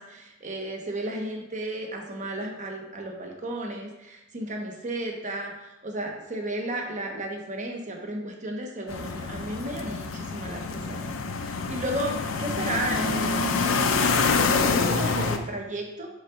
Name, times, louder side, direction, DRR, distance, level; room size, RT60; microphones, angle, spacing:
voice 1, 0.0-16.1, right 1 dB, 40° right, 2 dB, 0.9 m, -34 dB
sound 1, 8.9-15.4, left 4 dB, 80° left, 0.5 m, -26 dB
5.2 x 3.7 x 4.9 m, 0.96 s
head